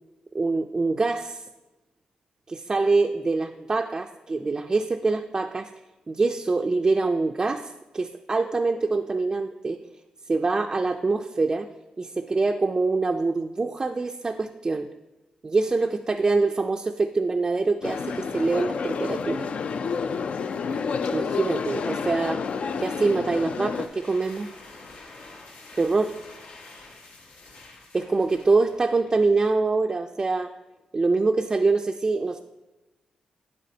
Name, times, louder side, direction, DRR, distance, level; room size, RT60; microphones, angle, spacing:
voice 1, 0.3-1.4 2.5-5.7 6.1-9.8 10.3-11.7 12.0-14.9 15.4-19.5 21.1-22.4 22.8-24.5 25.8-26.2 27.9-30.5 30.9-32.4, right 3 dB, 30° right, 5 dB, 0.3 m, -24 dB
sound 1, 17.8-23.9, left 5 dB, 60° left, 0.4 m, -29 dB
sound 2, 23.5-29.3, left 2 dB, 80° left, 1.3 m, -48 dB
8.9 x 7.6 x 2.8 m, 1.1 s
cardioid pair, 100°, 2 cm